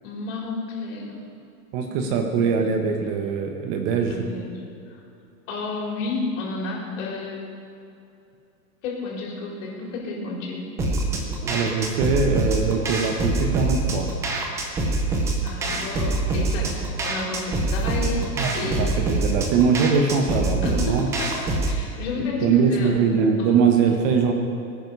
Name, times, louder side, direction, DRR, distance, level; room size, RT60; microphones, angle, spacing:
voice 1, 0.0-1.2 1.7-2.2 4.1-4.6 4.9-5.0 5.5-7.4 8.8-10.7 15.4-18.3 18.5-19.1 20.6-22.9 23.4-24.1, left 3 dB, 45° left, -2 dB, 4.6 m, -31 dB
voice 2, 1.7-4.1 11.4-14.1 18.4-21.1 22.2-24.3, right 5 dB, 35° right, 4 dB, 1.3 m, -22 dB
sound 1, 10.8-21.8, right 2 dB, 5° right, 0.5 m, -25 dB
21.5 x 9.7 x 5.5 m, 2.6 s
supercardioid pair, 155°, 50 cm